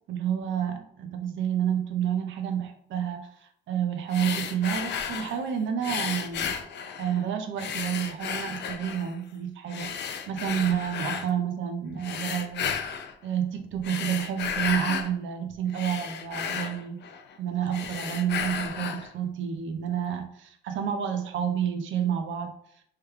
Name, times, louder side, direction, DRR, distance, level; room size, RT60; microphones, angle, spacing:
voice 1, 0.1-6.5 7.0-12.7 13.2-17.0 17.4-22.5, right 9 dB, 75° right, 5 dB, 0.6 m, -29 dB
sound 1, 4.1-5.4 5.8-7.2 7.6-9.1 9.7-11.3 12.0-13.1 13.7-15.1 15.5-17.4 17.7-19.1, left 7 dB, 60° left, 0.4 m, -33 dB
3.2 x 2.2 x 3.2 m, 0.68 s
cardioid pair, 90°, 20 cm